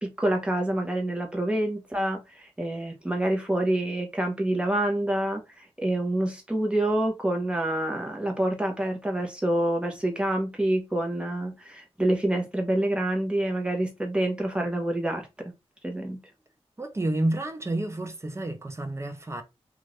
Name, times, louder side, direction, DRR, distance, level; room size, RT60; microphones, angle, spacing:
voice 1, 0.0-15.5 15.8-16.2, right 1 dB, 10° right, 1.0 m, -27 dB
voice 2, 16.8-19.4, right 1 dB, 25° right, 0.7 m, -29 dB
2.7 x 2.5 x 3.3 m
wide cardioid pair, 70°, 11 cm